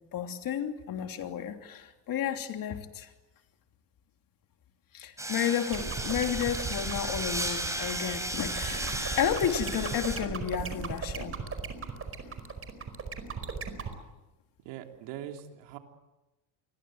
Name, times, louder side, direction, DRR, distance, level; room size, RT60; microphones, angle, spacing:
voice 1, 0.1-3.1 4.9-11.3, left 9 dB, 50° left, 5 dB, 3.1 m, -32 dB
sound 1, 5.2-10.2, right 1 dB, 5° right, 5.4 m, -35 dB
sound 2, 5.7-13.9, right 5 dB, 30° right, 4.9 m, -36 dB
voice 2, 14.7-15.8, right 11 dB, 75° right, 4 dB, 3.6 m, -42 dB
28.5 x 22.0 x 7.9 m, 1.0 s
cardioid pair, 115°, 43 cm